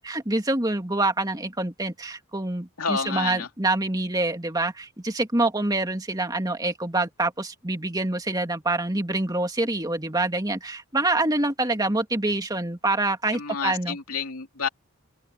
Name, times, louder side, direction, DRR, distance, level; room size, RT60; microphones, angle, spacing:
voice 1, 0.0-14.0, right 2 dB, 20° right, 2.4 m, -26 dB
voice 2, 2.8-3.5 13.3-14.7, left 5 dB, 85° left, 2.9 m, -29 dB
open air
head